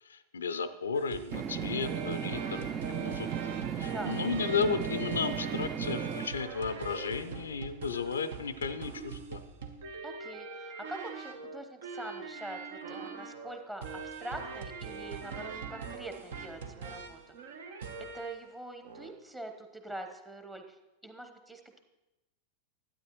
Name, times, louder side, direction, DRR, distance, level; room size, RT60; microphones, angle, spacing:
voice 1, 0.0-3.3 3.8-9.4, left 5 dB, 70° left, 12 dB, 0.4 m, -34 dB
sound 1, 0.9-18.5 18.8-19.1, right 5 dB, 60° right, 0.8 m, -42 dB
sound 2, 1.3-6.3, right 9 dB, 30° right, 0.4 m, -36 dB
voice 2, 10.0-17.4 18.1-20.8 21.0-21.8, right 1 dB, 10° right, 5 dB, 1.0 m, -44 dB
12.5 x 8.7 x 3.0 m, 1.0 s
figure-of-eight pair, 90°, 0 cm